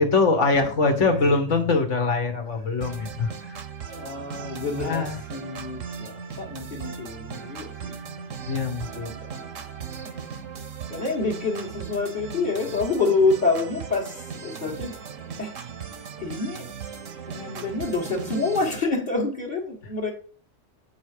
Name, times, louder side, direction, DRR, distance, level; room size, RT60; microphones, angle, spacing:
voice 1, 0.0-3.6 4.8-5.2 8.5-9.2, left 3 dB, 70° left, 1.7 m, -23 dB
sound 1, 2.8-18.8, right 6 dB, 85° right, 1.3 m, -38 dB
voice 2, 3.9-8.0 8.8-9.7 10.9-14.9 15.4-15.5 16.2-16.7 17.3-20.1, left 3 dB, 40° left, 1.6 m, -27 dB
8.2 x 4.8 x 4.9 m
omnidirectional pair, 1.3 m